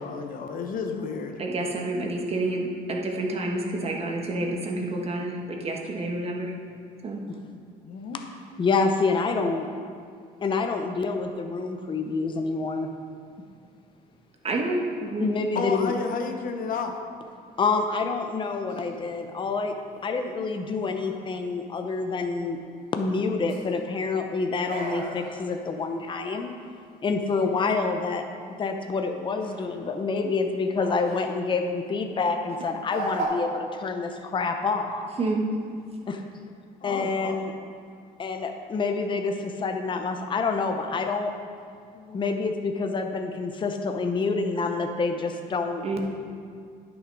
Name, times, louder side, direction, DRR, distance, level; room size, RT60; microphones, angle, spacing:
voice 1, 0.0-1.4 7.8-8.2 15.5-16.9 36.8-37.4 41.9-42.2, left 5 dB, 55° left, 4 dB, 0.9 m, -32 dB
voice 2, 1.4-6.5 7.0-7.2 14.4-15.3 35.2-35.4 45.8-46.0, right 2 dB, 35° right, 0 dB, 1.4 m, -29 dB
voice 3, 8.6-9.7 10.4-12.9 15.2-15.9 17.6-19.7 20.0-22.6 22.9-26.5 27.0-28.2 28.6-35.1 36.1-36.2 36.8-37.5 38.2-41.3 42.1-45.8, left 4 dB, 30° left, 5 dB, 0.7 m, -27 dB
sound 1, 18.7-19.8 20.9-21.3 23.2-23.8 24.6-25.7 26.2-26.7 27.3-27.5 29.4-30.1 30.8-31.5 31.8-32.0 32.8-33.2, right 3 dB, 85° right, 2.5 m, -39 dB
10.5 x 6.4 x 4.7 m, 2.2 s
cardioid pair, 110°, 17 cm